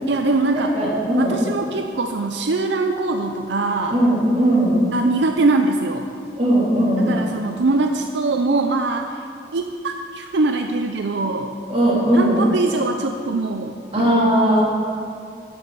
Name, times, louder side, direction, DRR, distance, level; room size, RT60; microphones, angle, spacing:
voice 1, 0.0-0.7 1.2-4.0 4.9-6.1 7.0-9.2 9.5-11.5 12.1-14.3, right 3 dB, 75° right, 5 dB, 0.6 m, -22 dB
voice 2, 0.5-1.3 3.9-4.9 6.3-7.2 11.7-12.5 13.9-14.6, right 1 dB, 35° right, -6 dB, 3.2 m, -18 dB
11.5 x 7.3 x 6.9 m, 2.5 s
head